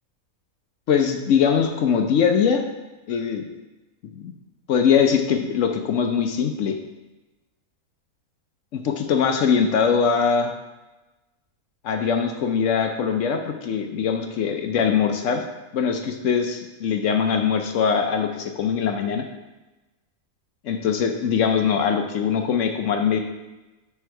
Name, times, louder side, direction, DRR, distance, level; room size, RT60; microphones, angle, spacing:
voice 1, 0.9-2.6 3.1-3.5 4.1-4.3 4.7-6.8 8.7-10.5 11.8-15.4 15.7-19.2 20.6-23.2, left 7 dB, 65° left, 5 dB, 0.9 m, -22 dB
9.5 x 3.5 x 4.5 m, 1.1 s
omnidirectional pair, 1.5 m